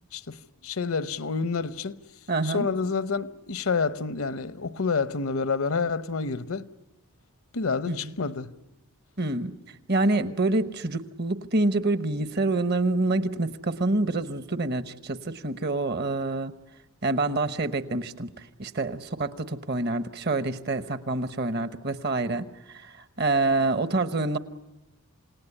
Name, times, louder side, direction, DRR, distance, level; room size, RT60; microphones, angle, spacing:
voice 1, 0.6-2.0 2.4-6.7 7.5-8.5, left 4 dB, 70° left, 0.8 m, -28 dB
voice 2, 2.3-2.7 7.9-8.1 9.2-9.5 9.9-16.5 17.0-18.3 18.6-24.4, right 2 dB, 45° right, 1.0 m, -27 dB
27.5 x 18.5 x 9.9 m
head